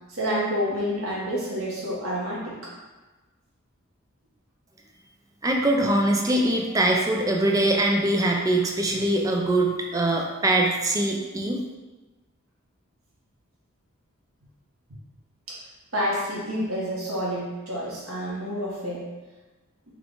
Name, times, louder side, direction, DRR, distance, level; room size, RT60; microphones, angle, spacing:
voice 1, 0.1-2.7 15.5-15.6 15.9-19.1, equal, 80° right, -6 dB, 1.1 m, -29 dB
voice 2, 5.4-11.6, right 1 dB, 15° right, 1 dB, 0.3 m, -22 dB
3.5 x 2.3 x 3.7 m, 1.2 s
head